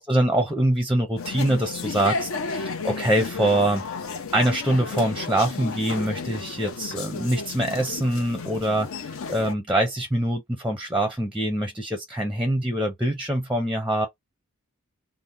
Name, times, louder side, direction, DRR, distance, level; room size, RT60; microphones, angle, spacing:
voice 1, 0.1-3.8 4.3-8.9 9.3-14.1, right 1 dB, 5° right, 0.5 m, -24 dB
sound 1, 1.2-9.5, left 4 dB, 65° left, 0.6 m, -33 dB
2.7 x 2.1 x 3.4 m
head